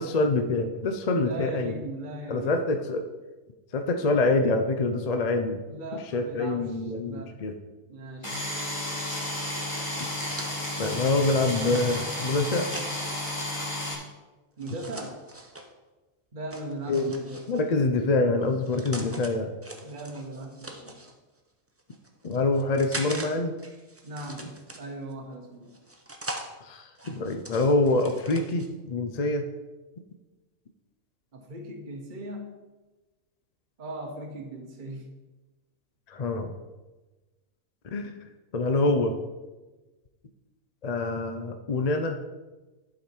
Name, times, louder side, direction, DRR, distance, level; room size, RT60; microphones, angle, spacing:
voice 1, 0.0-1.7 2.3-3.1 3.7-5.6 5.9-7.5 10.0-10.1 10.8-12.7 16.9-17.0 17.5-19.5 22.2-23.5 26.6-29.4 36.1-36.5 37.9-38.1 38.5-39.1 40.8-42.2, left 2 dB, 50° left, 6 dB, 0.5 m, -25 dB
voice 2, 1.2-2.6 5.7-6.8 7.1-7.3 7.9-8.3 14.6-15.2 16.3-17.7 19.8-21.0 24.0-25.7 31.3-32.5 33.8-35.1, right 1 dB, 40° right, 2 dB, 1.2 m, -38 dB
sound 1, 8.2-13.9, left 1 dB, 20° left, 1.9 m, -32 dB
sound 2, 10.3-13.4 14.6-15.7 16.5-17.7 18.4-19.3 19.6-21.1 21.8-23.3 23.6-25.1 25.7-26.5 27.0-28.7, right 1 dB, 15° right, 0.6 m, -42 dB
11.5 x 5.0 x 4.4 m, 1.2 s
omnidirectional pair, 1.4 m